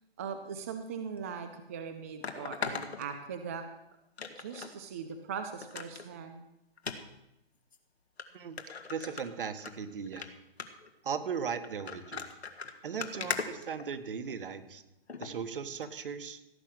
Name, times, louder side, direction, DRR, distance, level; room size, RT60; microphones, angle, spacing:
voice 1, 0.2-3.7 4.4-6.4, right 6 dB, 15° right, 8 dB, 0.4 m, -40 dB
sound 1, 1.2-1.3 2.2-3.7 4.2-4.7 5.1-5.2 5.6-6.1 6.8-7.0 7.7-7.8 8.2-8.3 8.6-9.7 10.1-10.3 10.6-10.9 11.6-14.3 15.1-15.3 15.8-15.9, left 5 dB, 85° left, 2.0 m, -39 dB
voice 2, 8.9-10.3 11.0-12.2 12.8-14.8 15.2-16.4, right 6 dB, 60° right, 9 dB, 1.7 m, -37 dB
17.0 x 8.9 x 6.5 m, 0.87 s
hypercardioid pair, 150°, 31 cm